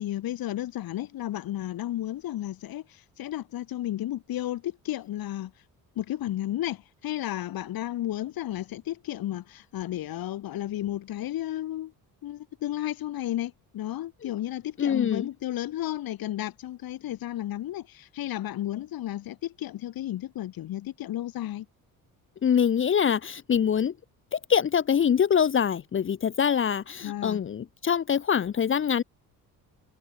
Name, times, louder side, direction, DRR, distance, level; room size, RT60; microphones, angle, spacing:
voice 1, 0.0-5.5 6.0-11.9 12.2-21.7 27.0-27.4, left 13 dB, 70° left, 7.6 m, -33 dB
voice 2, 14.8-15.3 22.4-23.9 24.3-29.0, left 8 dB, 35° left, 1.1 m, -24 dB
cardioid pair, 140°, 36 cm